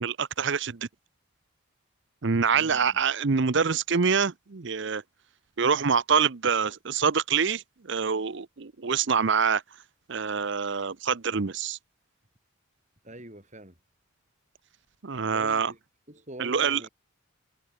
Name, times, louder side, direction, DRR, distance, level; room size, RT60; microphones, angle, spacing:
voice 1, 0.0-0.9 2.2-5.0 5.6-9.6 10.1-11.8 15.0-15.7 16.4-16.9, right 6 dB, 55° right, 0.7 m, -25 dB
voice 2, 2.5-2.8 13.0-13.7 15.1-15.8 16.1-16.9, right 1 dB, 35° right, 6.5 m, -45 dB
head